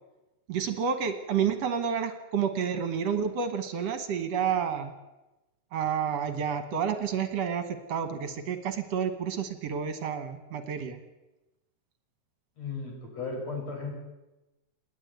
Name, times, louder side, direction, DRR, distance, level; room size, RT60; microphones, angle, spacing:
voice 1, 0.5-4.9 5.7-11.0, right 7 dB, 65° right, 10 dB, 2.3 m, -30 dB
voice 2, 12.6-13.9, left 4 dB, 60° left, 1 dB, 6.6 m, -35 dB
29.0 x 9.9 x 9.3 m, 1.0 s
omnidirectional pair, 3.4 m